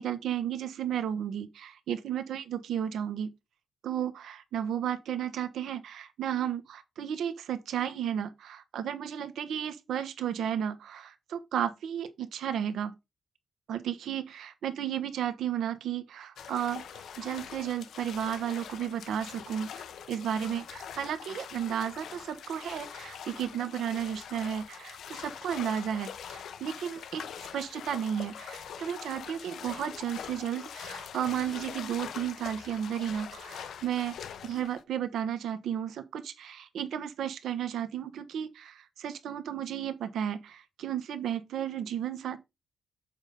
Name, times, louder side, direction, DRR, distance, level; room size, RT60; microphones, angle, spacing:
voice 1, 0.0-3.3 3.8-12.9 13.7-19.7 20.1-27.2 27.5-34.2 34.4-42.4, right 9 dB, 75° right, 1.1 m, -33 dB
sound 1, 16.4-34.8, left 8 dB, 65° left, 0.7 m, -43 dB
7.2 x 4.1 x 5.0 m
wide cardioid pair, 155°, 0 cm